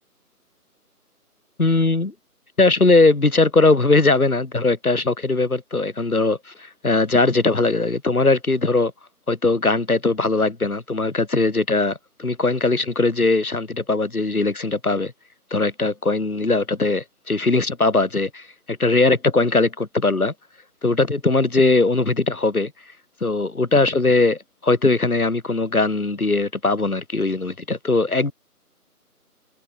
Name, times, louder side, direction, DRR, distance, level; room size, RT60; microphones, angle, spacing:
voice 1, 1.6-2.1 2.6-8.9 9.3-15.1 15.5-20.3 20.8-22.7 23.2-28.3, left 3 dB, 65° left, 4.0 m, -20 dB
figure-of-eight pair, 180°, 46 cm